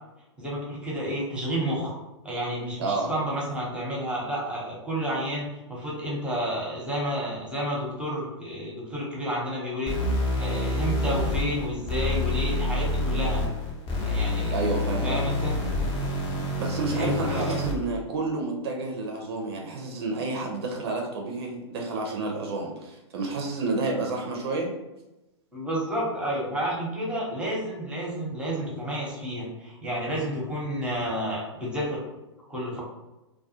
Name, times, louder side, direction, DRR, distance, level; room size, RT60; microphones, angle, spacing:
voice 1, 0.4-1.9 2.2-13.4 14.0-14.5 15.0-15.6 16.3-16.5 17.0-17.6 25.5-32.0 32.5-32.8, equal, 5° right, -5 dB, 0.8 m, -30 dB
voice 2, 2.8-3.1 14.5-15.2 16.6-24.7, right 3 dB, 60° right, 1 dB, 0.5 m, -30 dB
sound 1, 9.9-17.9, left 2 dB, 30° left, 0.7 m, -27 dB
2.3 x 2.2 x 2.8 m, 0.99 s
hypercardioid pair, 115°, 15 cm